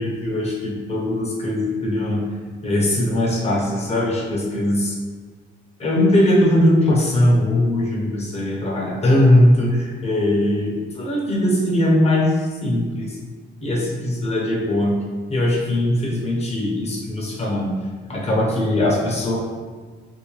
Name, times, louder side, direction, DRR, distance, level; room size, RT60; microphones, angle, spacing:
voice 1, 0.0-2.2 2.6-5.0 5.8-12.3 12.6-13.2 13.6-15.0 15.3-17.8 18.1-19.4, left 1 dB, 35° left, -3 dB, 0.9 m, -20 dB
3.1 x 2.7 x 3.1 m, 1.5 s
cardioid pair, 100°, 19 cm